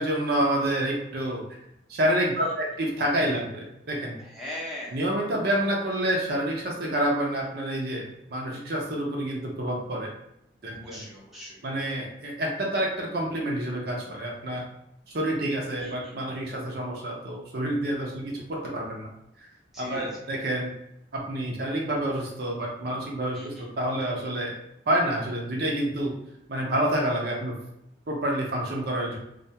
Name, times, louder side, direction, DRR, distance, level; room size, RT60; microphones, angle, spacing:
voice 1, 0.0-1.4 1.9-4.2 4.9-10.1 10.6-11.0 11.6-14.6 15.1-19.1 19.8-20.7 21.1-24.5 24.9-26.1 26.5-27.6 28.1-29.2, right 1 dB, 55° right, -2 dB, 0.5 m, -28 dB
voice 2, 4.2-5.0 10.6-11.6 15.8-16.2 19.7-20.1 23.3-23.6, left 1 dB, ahead, -6 dB, 0.6 m, -40 dB
2.3 x 2.2 x 2.8 m, 0.81 s
head